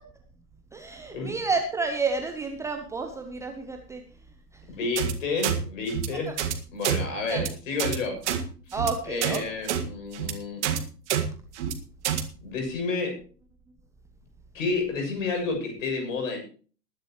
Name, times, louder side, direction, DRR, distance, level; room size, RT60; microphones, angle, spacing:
voice 1, 0.7-4.0 6.3-6.4 7.3-7.4 8.7-9.4, right 4 dB, 5° right, 4 dB, 0.8 m, -30 dB
voice 2, 4.7-6.3 6.7-8.2 9.1-10.6 12.4-13.2 14.5-16.4, left 4 dB, 50° left, 3 dB, 7.2 m, -30 dB
sound 1, 5.0-5.1 5.4-5.6 5.9-6.1 6.4-6.5 6.8-7.0 7.3-7.5 7.8-8.0 8.2-8.4 8.7-8.9 9.2-9.4 9.7-9.8 10.1-10.3 10.6-10.8 11.1-11.2 11.5-11.7 12.0-12.2, right 10 dB, 45° right, 1.9 m, -27 dB
20.5 x 11.0 x 3.1 m, 0.40 s
figure-of-eight pair, 110°, 49 cm